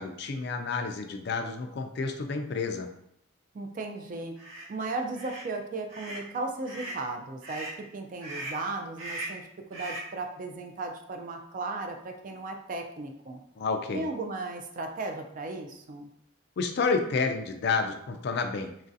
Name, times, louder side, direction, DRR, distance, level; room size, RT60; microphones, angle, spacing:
voice 1, 0.0-2.9 13.6-14.0 16.6-18.7, left 4 dB, 50° left, 6 dB, 0.3 m, -30 dB
voice 2, 3.5-4.3 4.7-7.7 7.9-13.4 13.9-16.1, right 3 dB, 40° right, 4 dB, 0.3 m, -36 dB
sound 1, 4.4-4.7 5.1-5.5 5.9-6.3 6.6-7.0 7.4-7.8 8.2-8.6 9.0-9.4 9.7-10.1, right 1 dB, 75° right, 0.9 m, -39 dB
3.1 x 2.4 x 2.6 m, 0.74 s
head